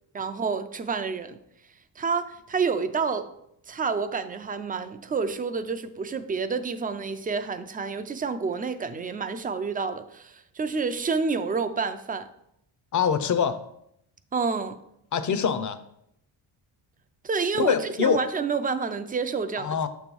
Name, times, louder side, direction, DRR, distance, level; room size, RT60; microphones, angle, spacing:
voice 1, 0.1-1.4 2.0-3.3 3.7-12.3 14.3-14.8 17.2-19.8, right 5 dB, 20° right, 0.3 m, -29 dB
voice 2, 12.9-13.6 15.1-15.8 17.6-18.2 19.6-19.9, left 7 dB, 40° left, 0.6 m, -24 dB
6.6 x 3.1 x 5.3 m
cardioid pair, 95°, 47 cm